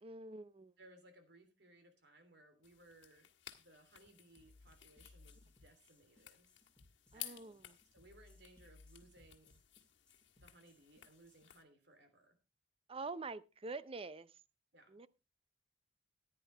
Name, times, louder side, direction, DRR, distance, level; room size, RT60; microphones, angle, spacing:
voice 1, 0.0-0.7 7.1-7.7 12.9-14.3 14.9-15.1, right 3 dB, 30° right, 0.6 m, -46 dB
voice 2, 0.8-3.3 3.6-6.5 7.1-9.6 10.3-12.4 14.7-15.0, right 2 dB, 65° right, 3.1 m, -64 dB
sound 1, 2.6-11.6, left 13 dB, 70° left, 1.5 m, -56 dB
sound 2, 4.4-11.5, left 2 dB, 5° left, 3.9 m, -65 dB
14.5 x 10.0 x 3.3 m
head